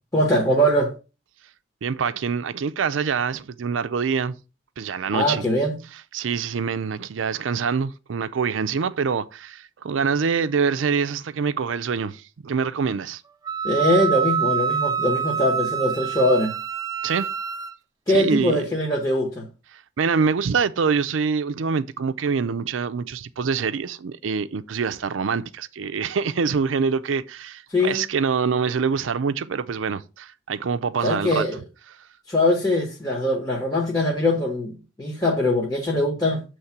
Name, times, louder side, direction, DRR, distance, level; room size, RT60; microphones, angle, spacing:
voice 1, 0.1-1.0 5.1-5.8 13.6-16.5 18.1-19.5 27.7-28.0 31.0-31.6 32.3-36.4, left 1 dB, 20° left, 1.1 m, -22 dB
voice 2, 1.8-4.4 4.8-5.5 6.1-13.2 17.0-17.3 18.1-18.6 19.7-31.5, right 5 dB, 85° right, 0.5 m, -25 dB
Wind instrument woodwind instrument, 13.5-17.7, right 8 dB, 20° right, 0.5 m, -26 dB
7.9 x 3.2 x 5.8 m
head